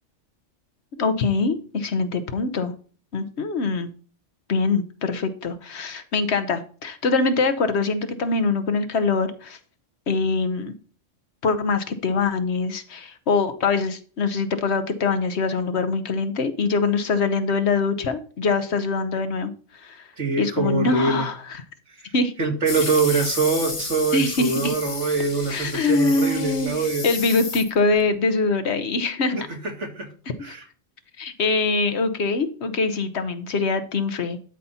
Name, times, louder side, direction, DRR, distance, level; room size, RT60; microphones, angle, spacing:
voice 1, 1.0-2.7 3.1-3.9 4.5-9.6 10.1-10.7 11.4-20.1 20.4-21.6 22.1-22.3 24.1-24.7 25.5-29.4 31.2-34.4, left 4 dB, 65° left, 10 dB, 1.2 m, -23 dB
voice 2, 20.2-21.3 22.4-27.1 29.5-30.1 30.4-30.6, right 4 dB, 70° right, 3 dB, 2.2 m, -24 dB
sound 1, 22.7-28.0, left 4 dB, 30° left, 0.9 m, -33 dB
12.5 x 4.2 x 5.6 m, 0.40 s
omnidirectional pair, 1.3 m